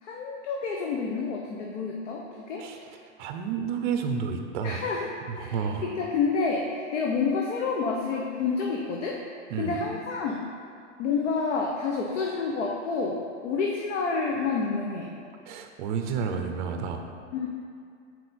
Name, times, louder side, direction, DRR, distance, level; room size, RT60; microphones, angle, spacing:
voice 1, 0.0-2.7 4.6-5.1 5.4-9.2 9.6-10.4 11.0-15.1 17.3-17.5, left 4 dB, 80° left, 0 dB, 0.8 m, -29 dB
voice 2, 2.6-2.9 3.2-4.8 5.3-5.9 9.5-9.8 15.5-17.0, right 6 dB, 40° right, 5 dB, 0.6 m, -30 dB
6.3 x 4.3 x 4.2 m, 2.3 s
supercardioid pair, 155°, 36 cm